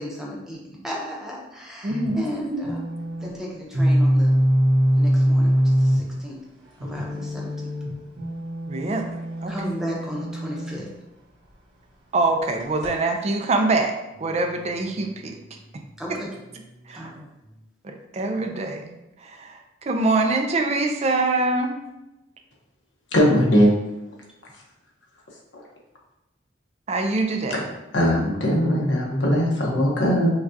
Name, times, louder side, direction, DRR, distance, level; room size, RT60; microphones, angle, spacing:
voice 1, 0.0-2.8 3.2-4.4 5.0-6.4 6.8-7.6 9.5-10.9 16.0-16.3 16.9-17.3, equal, 5° right, -4 dB, 0.8 m, -34 dB
voice 2, 1.8-2.6 8.7-9.1 9.4-9.5 12.1-15.4 16.9-17.1 17.8-18.9 19.2-19.6 19.9-21.8 26.9-27.6, right 2 dB, 35° right, 4 dB, 0.4 m, -24 dB
sound 1, 1.9-2.2 2.6-3.3 3.7-6.2 6.8-10.8 12.6-12.9, equal, 75° right, 1.4 m, -22 dB
voice 3, 23.1-23.7 27.5-27.6 27.9-30.3, equal, 75° left, -2 dB, 1.0 m, -19 dB
5.8 x 2.3 x 2.7 m, 0.95 s
head